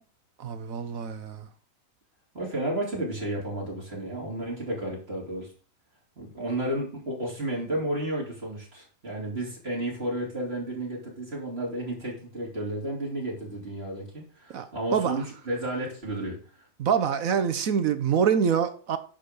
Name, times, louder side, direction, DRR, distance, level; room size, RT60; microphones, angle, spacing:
voice 1, 0.4-1.5 14.5-14.7 14.9-15.1 16.8-19.0, right 7 dB, 60° right, 1.0 m, -25 dB
voice 2, 2.3-5.5 6.2-16.4, right 1 dB, 35° right, 3.5 m, -32 dB
10.0 x 3.9 x 6.8 m
omnidirectional pair, 1.9 m